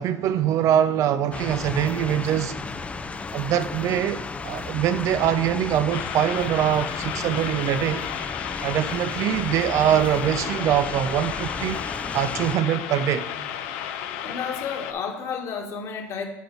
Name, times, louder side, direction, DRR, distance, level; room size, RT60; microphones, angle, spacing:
voice 1, 0.0-2.6 3.3-8.1 8.6-11.8 12.1-13.3, right 10 dB, 55° right, 0.4 m, -23 dB
sound 1, 1.3-12.6, left 4 dB, 20° left, 0.5 m, -34 dB
sound 2, 2.5-3.0 3.4-3.5 4.4-5.4 5.6-5.9, right 4 dB, 85° right, 2.1 m, -49 dB
sound 3, 5.9-14.9, left 10 dB, 80° left, 0.7 m, -33 dB
voice 2, 14.2-16.3, left 6 dB, 50° left, 1.6 m, -31 dB
9.3 x 3.9 x 4.5 m
supercardioid pair, 100°, 6 cm